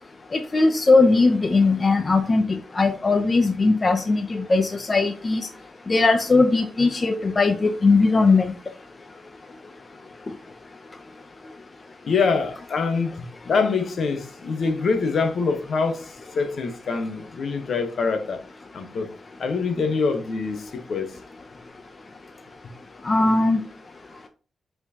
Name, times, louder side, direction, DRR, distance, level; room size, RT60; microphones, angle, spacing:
voice 1, 0.3-5.5 5.9-8.5 23.1-23.6, left 3 dB, 25° left, 0.5 m, -19 dB
voice 2, 12.1-18.4 18.7-19.1 19.4-21.1, left 4 dB, 55° left, 0.9 m, -25 dB
7.9 x 4.4 x 2.8 m
wide cardioid pair, 160°, 0 cm